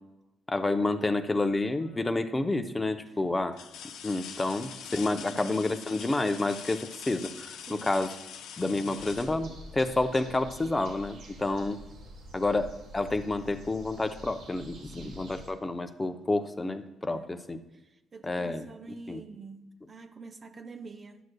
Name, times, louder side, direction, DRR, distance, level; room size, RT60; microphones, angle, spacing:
voice 1, 0.5-3.6 4.0-8.1 8.6-11.8 12.3-17.6 18.2-19.2, left 2 dB, 20° left, 0.5 m, -29 dB
sound 1, 1.8-2.3 2.8-2.9 3.5-10.2 12.0-12.1 12.6-13.6 14.9-15.0, left 7 dB, 85° left, 0.5 m, -45 dB
voice 2, 5.1-5.5 7.7-7.9 14.9-15.3 17.1-17.4 18.1-21.2, right 4 dB, 35° right, 0.5 m, -46 dB
sound 2, 9.0-15.5, equal, 85° right, 1.3 m, -47 dB
11.0 x 6.3 x 2.2 m
cardioid pair, 90°, 0 cm